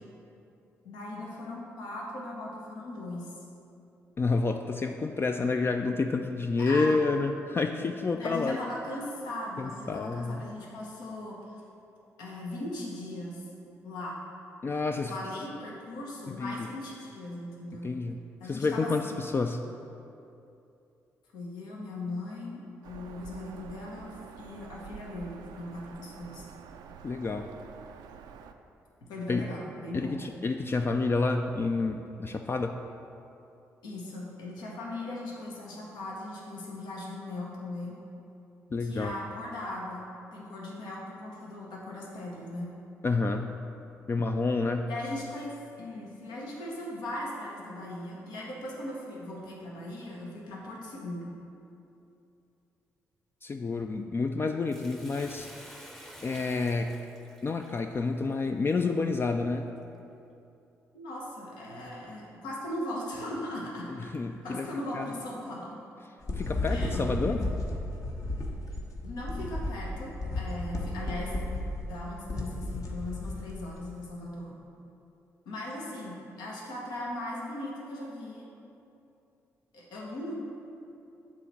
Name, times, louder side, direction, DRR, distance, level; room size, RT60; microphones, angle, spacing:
voice 1, 0.8-3.3 6.6-7.0 8.2-11.6 12.2-13.5 13.8-14.2 15.0-17.9 18.4-19.2 21.3-26.4 29.1-30.2 33.8-38.0 38.8-42.7 44.8-51.3 60.9-64.1 64.4-65.8 66.7-67.6 69.0-71.3 71.9-74.6 75.4-78.5 79.7-80.3, left 1 dB, 75° left, -3 dB, 1.0 m, -39 dB
voice 2, 4.2-8.6 9.6-10.4 14.6-15.1 16.4-16.7 17.8-18.2 18.4-19.6 27.0-27.5 29.3-29.5 29.9-32.8 38.7-39.1 43.0-43.6 44.1-44.9 53.4-57.0 57.4-59.7 64.0-64.7 64.9-65.1 66.3-67.4, left 3 dB, 30° left, 5 dB, 0.3 m, -29 dB
Bird vocalization bird call bird song, 22.8-28.5, right 7 dB, 75° right, 0.3 m, -48 dB
Bathtub (filling or washing), 54.7-59.2 59.8-59.9, equal, 5° left, 0.7 m, -50 dB
sound 1, 66.2-73.8, left 1 dB, 50° left, 1.0 m, -33 dB
7.6 x 3.1 x 6.0 m, 2.7 s
hypercardioid pair, 45°, 7 cm